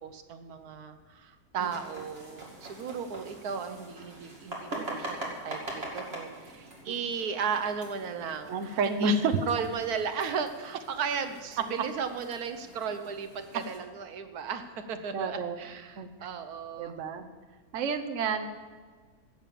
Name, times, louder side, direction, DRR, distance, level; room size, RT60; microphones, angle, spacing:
voice 1, 0.0-9.2 9.5-17.0, right 6 dB, 80° right, 8 dB, 1.4 m, -35 dB
sound 1, 1.6-13.8, right 1 dB, 40° right, 2.7 m, -43 dB
voice 2, 8.5-9.4 13.5-13.6 15.1-15.7 16.0-16.1 16.8-17.3 17.7-18.5, right 3 dB, 60° right, 6 dB, 1.2 m, -29 dB
16.0 x 7.0 x 7.5 m, 1.5 s
omnidirectional pair, 1.6 m